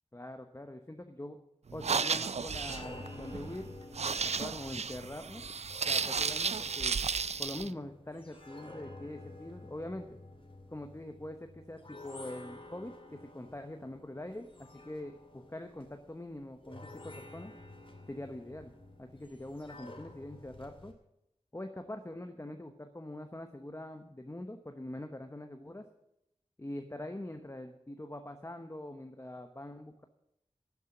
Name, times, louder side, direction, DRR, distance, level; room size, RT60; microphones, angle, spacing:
voice 1, 0.1-1.4 1.7-3.7 4.0-5.4 5.8-7.0 7.4-10.2 10.7-17.5 18.1-18.7 19.0-20.9 21.5-25.9 26.6-30.0, left 1 dB, 25° left, 6 dB, 1.0 m, -43 dB
sound 1, 1.7-7.7, right 5 dB, 65° right, 0.4 m, -33 dB
sound 2, 2.4-20.9, left 2 dB, 45° left, 2.5 m, -51 dB
12.0 x 7.2 x 9.8 m, 0.82 s
wide cardioid pair, 50°, 12 cm